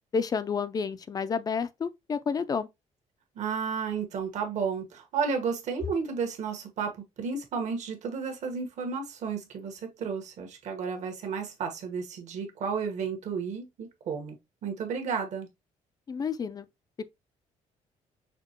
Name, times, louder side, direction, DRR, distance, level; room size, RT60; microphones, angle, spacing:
voice 1, 0.1-2.7 16.1-16.7, left 5 dB, 30° left, 0.4 m, -30 dB
voice 2, 3.3-14.4 14.6-15.5, right 5 dB, 60° right, 1.4 m, -32 dB
5.9 x 2.8 x 2.9 m
cardioid pair, 135°, 13 cm